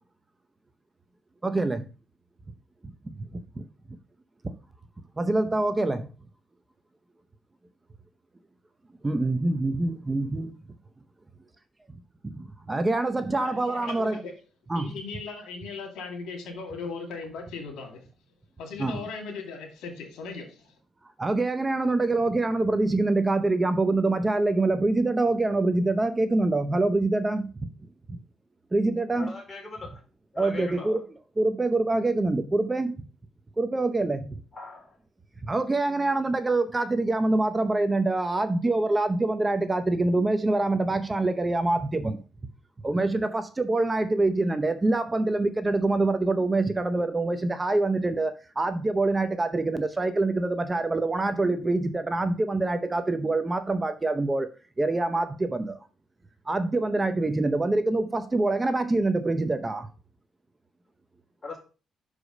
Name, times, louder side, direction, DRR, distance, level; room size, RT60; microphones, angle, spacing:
voice 1, 1.4-1.9 4.4-4.5 5.2-6.1 9.0-10.5 12.4-14.2 14.7-15.0 18.8-19.0 21.2-27.5 28.1-28.2 28.7-29.3 30.4-31.0 31.4-32.9 33.6-34.2 35.4-42.2 42.8-54.5 54.8-55.8 56.5-59.9, right 2 dB, 20° right, 0.7 m, -25 dB
voice 2, 13.4-14.3 14.7-18.1 18.6-20.7, left 4 dB, 85° left, 2.2 m, -38 dB
voice 3, 29.1-30.0 30.3-31.0 34.5-34.8 61.4-61.6, left 3 dB, 30° left, 3.3 m, -39 dB
6.2 x 5.0 x 5.3 m
cardioid pair, 90°, 0 cm